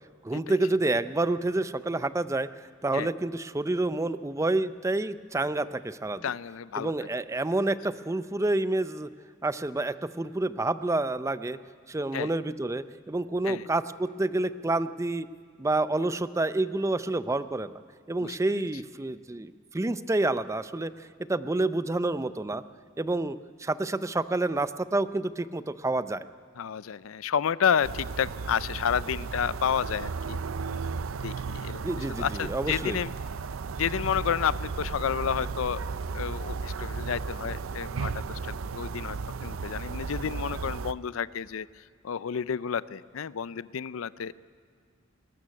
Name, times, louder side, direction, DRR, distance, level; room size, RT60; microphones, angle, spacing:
voice 1, 0.2-2.5 2.8-6.2 6.8-9.1 9.4-11.6 11.9-15.3 15.6-17.7 18.1-20.9 21.3-22.6 23.0-26.3 31.8-33.0, right 2 dB, 15° right, 14 dB, 0.4 m, -28 dB
voice 2, 6.2-6.9 12.1-12.3 13.5-13.7 18.2-18.4 26.6-30.4 31.1-33.1 33.8-35.8 36.1-41.7 42.0-44.3, left 7 dB, 85° left, 18 dB, 0.5 m, -30 dB
sound 1, 27.8-40.9, right 4 dB, 85° right, 0.5 m, -35 dB
20.5 x 13.0 x 9.7 m, 2.1 s
head